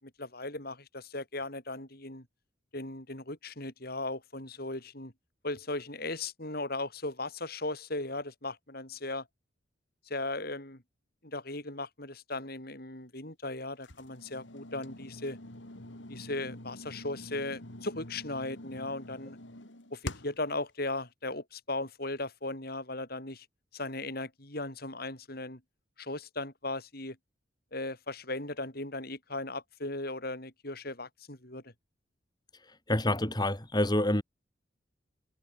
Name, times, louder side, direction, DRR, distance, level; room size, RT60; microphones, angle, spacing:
voice 1, 0.0-2.3 2.7-5.1 5.4-9.3 10.1-10.8 11.2-15.4 16.1-19.4 19.9-23.5 23.7-25.6 26.0-27.2 27.7-31.7, left 2 dB, 50° left, 7.0 m, -37 dB
sound 1, 13.8-20.5, left 1 dB, 70° left, 3.2 m, -45 dB
voice 2, 32.9-34.2, left 1 dB, 20° left, 3.3 m, -27 dB
head